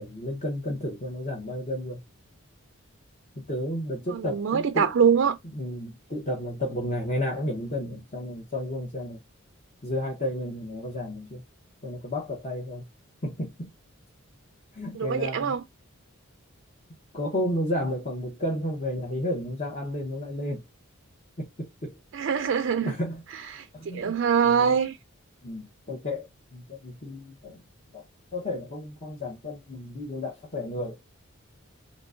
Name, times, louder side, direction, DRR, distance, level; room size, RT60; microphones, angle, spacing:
voice 1, 0.0-2.0 3.3-4.9 5.5-9.2 9.8-11.4 11.8-12.9 13.2-13.7 14.7-15.5 17.1-20.6 21.4-22.0 22.8-23.3 23.7-24.2 24.4-24.8 25.4-27.6 27.9-28.0 28.3-30.9, left 1 dB, 35° left, 0.8 m, -32 dB
voice 2, 4.1-5.4 15.0-15.6 22.1-22.9 23.3-23.7 23.9-25.0, right 7 dB, 60° right, 0.4 m, -24 dB
3.6 x 2.6 x 2.5 m
head